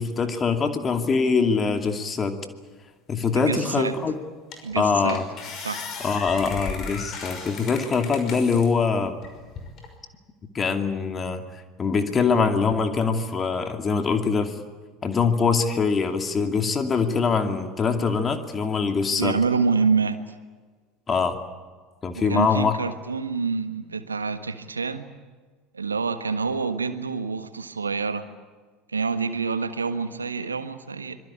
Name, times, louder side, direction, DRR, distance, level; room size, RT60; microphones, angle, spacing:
voice 1, 0.0-2.4 3.1-4.2 4.7-5.2 6.0-9.2 10.5-11.4 11.8-14.6 15.0-19.4 21.1-21.4 22.0-22.8, left 5 dB, 25° left, 6 dB, 2.5 m, -23 dB
voice 2, 3.3-4.0 4.6-5.2 5.6-5.8 19.2-20.2 22.1-25.1 25.7-28.3 28.9-31.2, right 5 dB, 80° right, 11 dB, 1.5 m, -27 dB
sound 1, 3.9-4.0 4.5-4.8 5.1-8.7 9.2-9.9, left 5 dB, 40° left, 5.7 m, -36 dB
25.5 x 23.0 x 8.7 m, 1.4 s
figure-of-eight pair, 70°, 0 cm